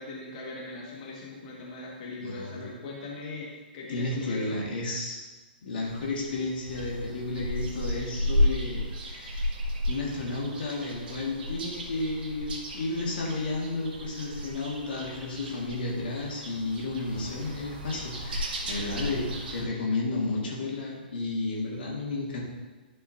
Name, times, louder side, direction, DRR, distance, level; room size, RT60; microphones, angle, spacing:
voice 1, 0.0-4.6, left 3 dB, 50° left, -3 dB, 1.7 m, -40 dB
voice 2, 2.2-2.6 3.9-5.2 5.6-9.5 9.9-22.4, left 2 dB, 70° left, -3 dB, 1.8 m, -32 dB
sound 1, 5.8-19.6, left 1 dB, 65° right, 1.6 m, -33 dB
11.5 x 5.5 x 2.7 m, 1.2 s
hypercardioid pair, 120°, 5 cm